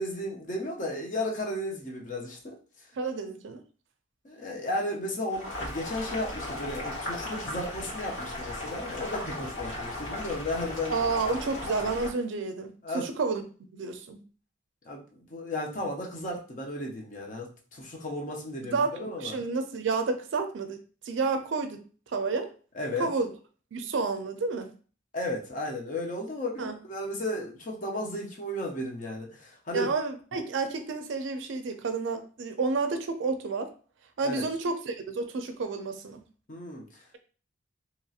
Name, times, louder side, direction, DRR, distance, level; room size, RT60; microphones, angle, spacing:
voice 1, 0.0-2.5 4.2-11.0 12.8-13.1 14.9-19.4 22.7-23.1 25.1-29.9 34.2-34.4 36.5-37.0, left 1 dB, 40° left, 0 dB, 0.6 m, -34 dB
voice 2, 3.0-3.6 10.9-12.7 12.9-13.4 13.7-14.2 18.7-21.8 22.1-22.5 23.0-23.3 23.7-24.7 26.6-26.7 29.7-33.7 34.2-36.2, right 4 dB, 70° right, 8 dB, 0.4 m, -30 dB
Boiling, 5.3-12.1, left 1 dB, 90° left, 1.3 m, -36 dB
2.9 x 2.7 x 2.4 m, 0.39 s
head